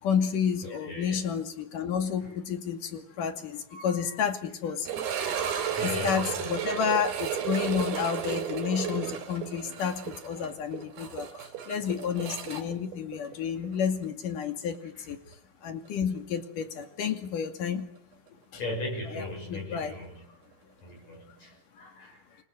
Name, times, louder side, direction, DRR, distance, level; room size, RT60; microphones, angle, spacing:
voice 1, 0.0-4.9 5.8-15.2 15.6-17.9 18.5-18.6 19.1-19.9, left 7 dB, 60° left, 7 dB, 3.9 m, -31 dB
voice 2, 0.7-1.2 2.2-2.3 3.7-4.2 5.7-6.6 18.6-20.2 20.8-22.4, left 2 dB, 45° left, -1 dB, 7.9 m, -38 dB
sound 1, 4.9-13.8 14.0-14.1 14.8-14.9 17.4-17.5, right 8 dB, 80° right, 4.7 m, -33 dB
29.0 x 24.5 x 7.9 m, 0.71 s
omnidirectional pair, 4.4 m